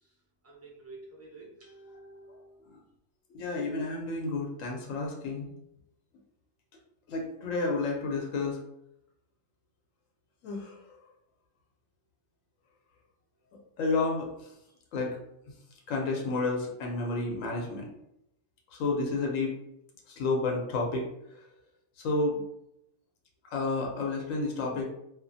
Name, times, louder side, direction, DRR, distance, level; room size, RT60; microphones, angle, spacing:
voice 1, 0.4-2.6, right 2 dB, 20° right, -4 dB, 0.5 m, -50 dB
voice 2, 1.9-2.4 2.7-2.8 3.3-5.5 7.1-8.6 10.4-10.8 13.8-14.3 14.9-15.2 15.9-17.9 18.7-19.5 20.1-21.1 22.0-22.4 23.4-24.8, left 3 dB, 90° left, 0 dB, 1.0 m, -31 dB
2.4 x 2.4 x 2.6 m, 0.81 s
omnidirectional pair, 1.3 m